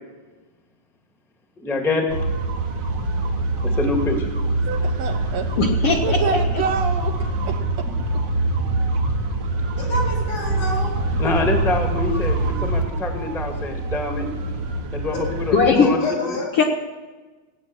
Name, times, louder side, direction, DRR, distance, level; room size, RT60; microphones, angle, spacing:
voice 1, 1.6-2.1 3.6-4.3 11.2-14.3 14.9-16.0 16.3-16.4, left 2 dB, ahead, 3 dB, 1.6 m, -25 dB
sound 1, 2.1-15.7, right 2 dB, 45° right, 1.6 m, -24 dB
voice 2, 4.7-5.5 5.9-7.9, right 6 dB, 65° right, 5 dB, 2.2 m, -27 dB
voice 3, 5.6-6.4 15.5-15.9 16.6-16.7, left 5 dB, 60° left, 0 dB, 2.0 m, -18 dB
voice 4, 9.8-11.0 15.1-15.2 15.7-16.5, left 2 dB, 75° left, -1 dB, 6.1 m, -28 dB
18.0 x 9.3 x 8.0 m, 1.3 s
omnidirectional pair, 3.4 m